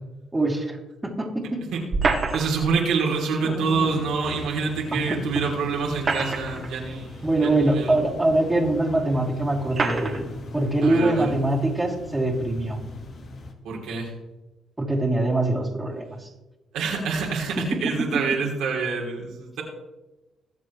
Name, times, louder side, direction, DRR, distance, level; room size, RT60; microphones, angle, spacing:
voice 1, 0.3-0.8 1.0-1.6 3.4-4.0 4.9-5.2 7.2-10.2 10.5-12.8 14.8-16.3 17.6-17.9, right 2 dB, 15° right, -3 dB, 3.0 m, -23 dB
sound 1, 1.9-2.7 4.4-4.5 5.8-6.7 7.6-7.7 8.6-8.7 9.7-10.2, right 4 dB, 40° right, 2.2 m, -26 dB
voice 2, 2.3-7.9 10.8-11.3 13.6-14.1 16.7-19.6, right 5 dB, 85° right, -2 dB, 3.0 m, -26 dB
sound 2, 3.7-13.5, left 2 dB, 50° left, 1.7 m, -40 dB
22.0 x 7.4 x 3.2 m, 1.0 s
cardioid pair, 90°, 0 cm